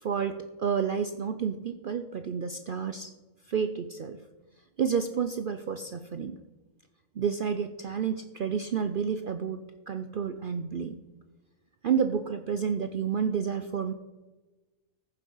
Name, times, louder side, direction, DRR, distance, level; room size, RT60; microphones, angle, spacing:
voice 1, 0.0-3.1 3.5-4.2 4.8-6.4 7.2-11.0 11.8-13.9, right 7 dB, 80° right, 8 dB, 0.4 m, -30 dB
14.5 x 7.4 x 5.5 m, 1.2 s
omnidirectional pair, 1.6 m